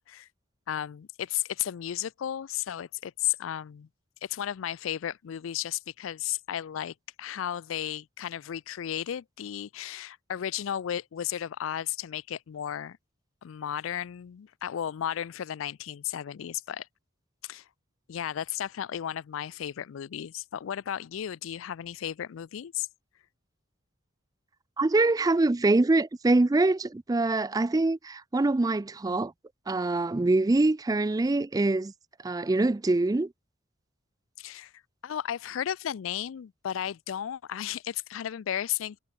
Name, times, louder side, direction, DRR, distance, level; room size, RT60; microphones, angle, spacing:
voice 1, 0.7-3.9 4.2-13.0 13.4-16.9 17.4-17.6 18.1-22.9 34.4-34.7 35.0-39.0, left 10 dB, 75° left, 0.4 m, -34 dB
voice 2, 24.8-29.3 29.7-31.9 32.2-33.3, right 2 dB, 20° right, 0.4 m, -24 dB
head